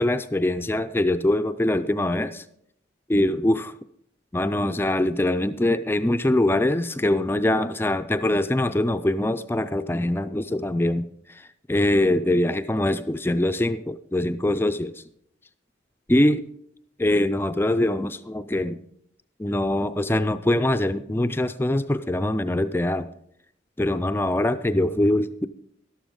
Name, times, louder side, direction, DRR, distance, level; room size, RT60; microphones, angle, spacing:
voice 1, 0.0-2.4 3.1-3.7 4.3-11.0 11.7-14.9 16.1-16.4 17.0-18.8 19.4-23.1 23.8-25.5, left 1 dB, 10° left, 11 dB, 0.4 m, -23 dB
12.5 x 12.0 x 3.8 m, 0.73 s
head